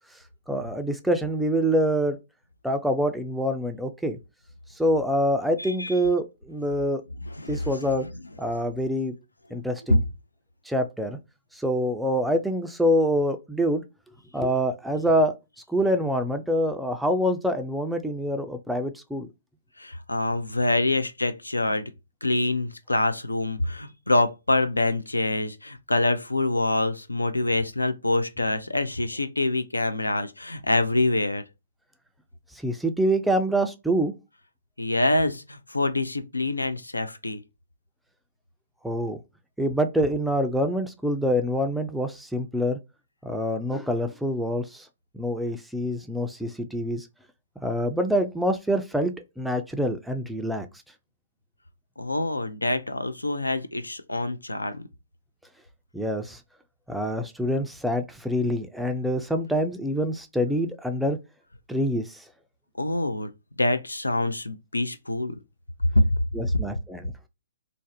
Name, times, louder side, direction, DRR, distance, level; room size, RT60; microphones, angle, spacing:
voice 1, 0.5-2.2 2.6-4.2 4.8-7.0 7.5-8.1 8.4-9.2 9.5-10.0 10.7-11.2 11.5-13.8 14.3-15.3 15.7-19.3 32.6-34.1 38.8-39.2 39.6-42.8 43.2-44.9 45.1-47.1 47.6-50.7 55.9-56.4 56.9-61.2 61.7-62.2 66.3-67.1, equal, ahead, 0.3 m, -26 dB
voice 2, 5.6-5.9 7.3-7.9 9.9-10.0 19.8-21.9 22.2-31.4 34.8-37.4 52.0-54.8 62.8-63.3 63.6-65.4 65.9-66.2, left 2 dB, 90° left, 0.3 m, -25 dB
2.5 x 2.0 x 2.5 m
figure-of-eight pair, 125°, 0 cm